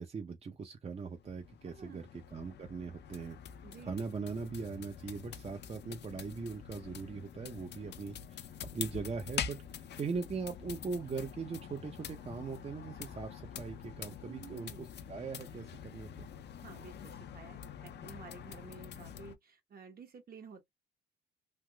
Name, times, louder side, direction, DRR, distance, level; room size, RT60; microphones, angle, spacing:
voice 1, 0.0-3.4 3.8-16.3, right 5 dB, 30° right, 0.7 m, -40 dB
sound 1, 0.9-19.3, left 8 dB, 60° left, 0.6 m, -46 dB
voice 2, 1.7-2.1 3.6-4.0 14.3-14.9 16.6-20.7, right 6 dB, 50° right, 1.1 m, -52 dB
3.3 x 2.6 x 2.2 m
cardioid pair, 90°, 20 cm